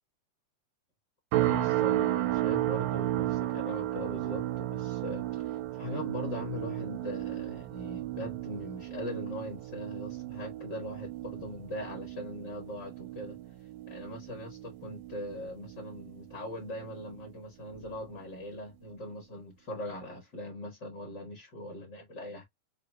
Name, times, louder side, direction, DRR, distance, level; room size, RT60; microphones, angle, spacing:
sound 1, 1.3-16.5 16.9-17.3 17.8-18.0, right 15 dB, 85° right, 2.3 m, -34 dB
voice 1, 1.4-13.4 13.9-22.4, left 1 dB, 45° left, 1.4 m, -41 dB
5.9 x 2.6 x 2.2 m
omnidirectional pair, 3.7 m